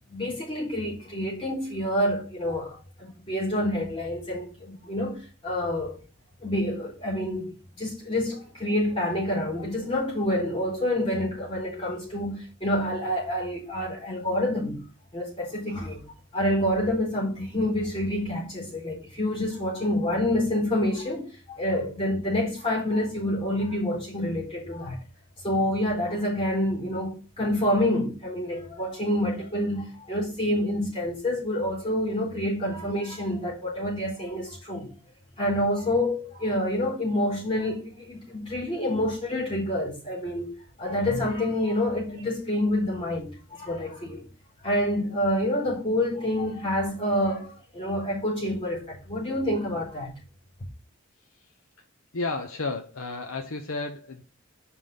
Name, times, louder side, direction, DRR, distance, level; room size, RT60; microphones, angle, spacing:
voice 1, 0.1-6.0 6.4-14.8 15.1-16.0 16.3-25.0 25.4-34.9 35.4-44.3 44.6-50.1, left 1 dB, 25° left, 4.0 m, -28 dB
voice 2, 52.1-54.2, left 3 dB, 75° left, 0.8 m, -32 dB
5.8 x 4.9 x 5.3 m
head